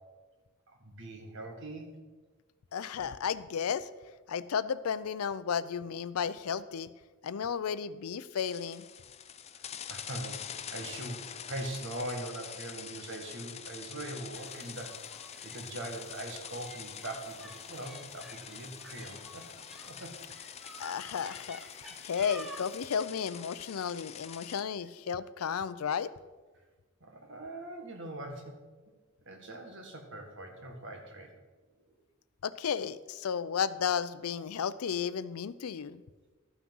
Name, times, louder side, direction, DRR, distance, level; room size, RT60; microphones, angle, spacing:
voice 1, 0.7-1.9 2.9-3.1 9.5-9.6 9.9-19.4 19.8-20.2 27.0-28.5 29.2-31.3, right 1 dB, 60° right, 3 dB, 1.7 m, -42 dB
voice 2, 2.7-3.9 4.3-6.9 7.2-8.8 20.8-26.1 32.4-36.0, left 7 dB, 85° left, 15 dB, 0.5 m, -33 dB
sound 1, 8.4-24.6, left 8 dB, 30° left, 0.5 m, -45 dB
sound 2, 14.3-23.0, equal, ahead, 0.8 m, -52 dB
13.0 x 6.0 x 5.4 m, 1.3 s
head